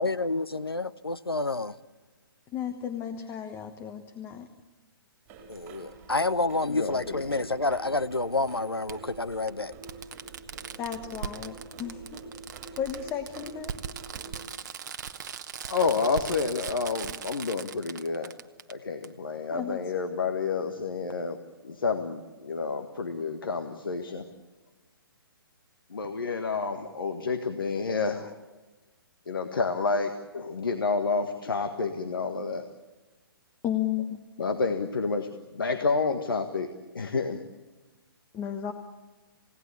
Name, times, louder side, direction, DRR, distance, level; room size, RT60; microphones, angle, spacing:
voice 1, 0.0-1.7 5.5-9.7, left 2 dB, 85° left, 0.8 m, -29 dB
voice 2, 2.5-4.5 10.8-12.2 12.8-13.8 19.5-19.8 33.6-34.2 38.3-38.7, left 9 dB, 15° left, 1.2 m, -33 dB
sound 1, 5.3-14.5, right 4 dB, 20° right, 4.4 m, -46 dB
Fireworks, 5.6-5.7 7.2-7.3 8.9-9.0 9.5-9.6 9.8-18.7 19.0-19.1, right 7 dB, 50° right, 1.0 m, -39 dB
voice 3, 6.6-7.4 15.6-18.3 18.7-21.4 21.6-24.2 25.9-28.3 29.3-32.7 34.4-36.7 36.9-37.4, left 4 dB, 65° left, 1.6 m, -29 dB
28.5 x 17.5 x 8.4 m
figure-of-eight pair, 130°, 12 cm